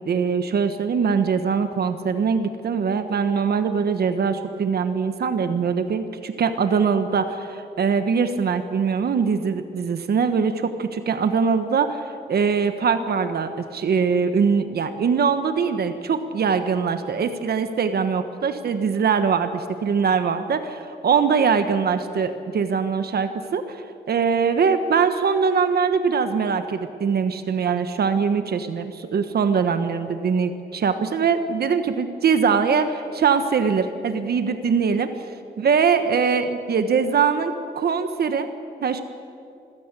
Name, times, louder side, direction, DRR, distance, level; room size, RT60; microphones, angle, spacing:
voice 1, 0.0-12.0 12.3-35.1 35.6-38.5 38.8-39.0, right 6 dB, 60° right, 9 dB, 1.3 m, -22 dB
26.5 x 16.0 x 8.3 m, 2.7 s
wide cardioid pair, 135°, 18 cm